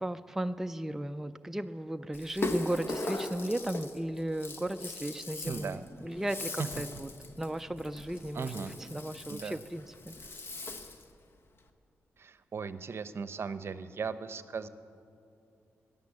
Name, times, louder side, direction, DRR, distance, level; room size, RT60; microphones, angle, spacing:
voice 1, 0.0-7.1 7.4-8.5 8.9-10.1, right 1 dB, 5° right, 8 dB, 0.4 m, -35 dB
Rattle (instrument), 2.1-11.1, left 2 dB, 50° left, 1.1 m, -39 dB
voice 2, 5.4-5.8 6.6-6.7 8.3-8.7 9.3-9.6 12.2-14.7, right 5 dB, 55° right, 13 dB, 0.7 m, -37 dB
14.5 x 10.5 x 8.3 m, 2.6 s
cardioid pair, 70°, 5 cm